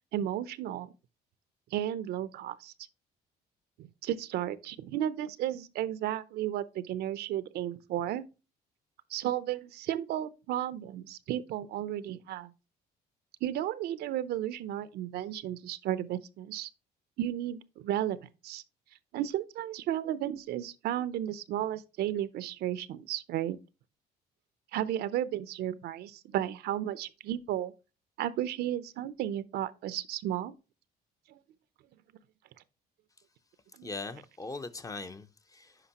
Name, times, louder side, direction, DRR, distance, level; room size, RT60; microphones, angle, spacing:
voice 1, 0.1-0.9 1.7-2.7 3.8-8.3 9.1-12.5 13.4-16.7 17.2-18.6 19.1-23.6 24.7-27.7 28.2-30.5 31.3-31.4 33.8-33.9, right 12 dB, 70° right, 0.6 m, -33 dB
voice 2, 33.8-35.9, left 3 dB, 20° left, 0.6 m, -41 dB
9.8 x 5.2 x 2.9 m
cardioid pair, 110°, 17 cm